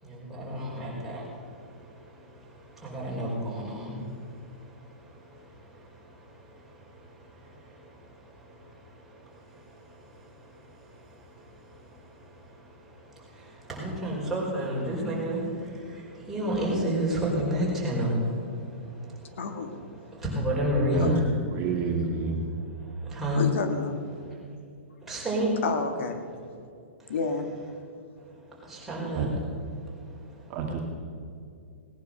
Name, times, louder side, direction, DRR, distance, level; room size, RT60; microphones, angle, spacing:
voice 1, 0.0-21.4 22.5-23.5 24.2-24.4 25.0-25.6 27.0-27.2 28.2-29.4 29.7-30.6, equal, 5° right, -6 dB, 4.9 m, -32 dB
voice 2, 19.4-19.8 21.0-21.2 23.3-23.9 25.6-26.2 27.1-27.5, left 4 dB, 70° left, 7 dB, 1.7 m, -30 dB
voice 3, 21.5-22.4 29.1-29.3 30.5-30.8, right 5 dB, 30° right, 0 dB, 1.9 m, -29 dB
19.0 x 10.5 x 6.5 m, 2.5 s
hypercardioid pair, 150°, 7 cm